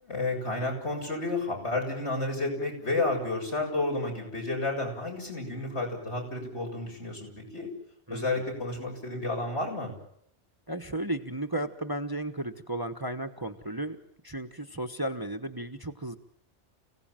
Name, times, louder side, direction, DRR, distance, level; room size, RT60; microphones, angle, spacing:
voice 1, 0.0-7.7 8.1-9.9, left 2 dB, 65° left, 1 dB, 8.0 m, -31 dB
voice 2, 10.7-14.0 14.2-16.2, right 1 dB, 20° right, 6 dB, 1.2 m, -34 dB
29.5 x 17.5 x 9.1 m, 0.70 s
omnidirectional pair, 1.2 m